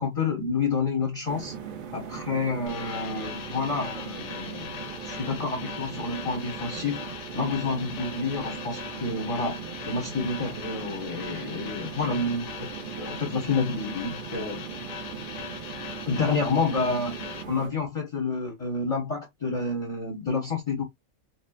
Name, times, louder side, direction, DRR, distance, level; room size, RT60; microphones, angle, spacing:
voice 1, 0.0-1.5 1.9-4.8 5.0-7.0 7.3-9.6 9.9-12.7 13.0-14.6 16.1-17.2 17.5-20.8, left 4 dB, 35° left, 0.6 m, -29 dB
sound 1, 1.3-17.7, right 7 dB, 65° right, 0.5 m, -39 dB
sound 2, 2.7-17.4, left 8 dB, 70° left, 0.8 m, -40 dB
2.7 x 2.0 x 2.2 m
omnidirectional pair, 1.3 m